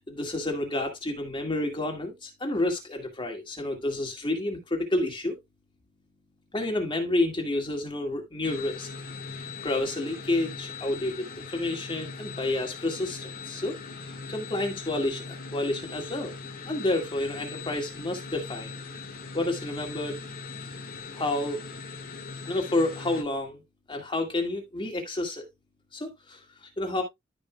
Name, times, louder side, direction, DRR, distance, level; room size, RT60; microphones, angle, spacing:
voice 1, 0.1-5.3 6.5-8.9 9.3-15.2 15.5-16.3 16.7-18.7 19.3-20.2 21.1-21.6 22.5-23.6 23.9-25.4 25.9-27.0, left 2 dB, 25° left, 2.1 m, -30 dB
sound 1, 8.4-23.2, left 4 dB, 45° left, 1.9 m, -40 dB
14.0 x 5.0 x 2.3 m
head